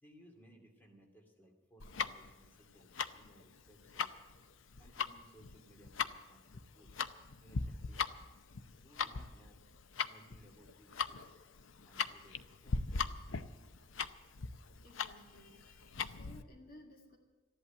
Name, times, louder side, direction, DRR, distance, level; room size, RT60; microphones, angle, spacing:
voice 1, 0.0-4.1 4.8-6.9 7.4-8.2 8.8-9.6 10.1-11.4 11.8-12.8, equal, 10° left, 1 dB, 2.3 m, -62 dB
Tick-tock, 1.8-16.4, left 5 dB, 90° left, 0.7 m, -40 dB
voice 2, 14.8-17.2, left 1 dB, 50° left, 3 dB, 2.1 m, -58 dB
14.0 x 11.0 x 8.1 m, 1.3 s
head